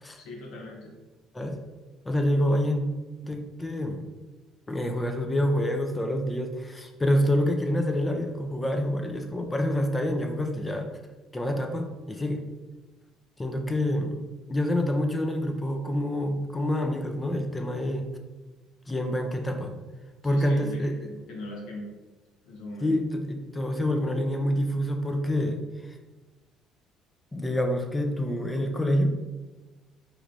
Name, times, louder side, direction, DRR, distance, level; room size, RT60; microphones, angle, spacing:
voice 1, 0.2-0.9 20.2-21.9 22.4-23.0, left 1 dB, 80° left, -2 dB, 0.9 m, -40 dB
voice 2, 2.1-2.8 3.2-4.0 4.7-10.9 11.3-12.4 13.4-14.2 14.5-18.1 18.9-19.7 20.2-20.9 22.8-25.6 25.9-26.0 27.3-29.2, left 1 dB, 10° left, 4 dB, 0.4 m, -27 dB
4.7 x 3.1 x 2.5 m, 1.2 s
cardioid pair, 160°, 0 cm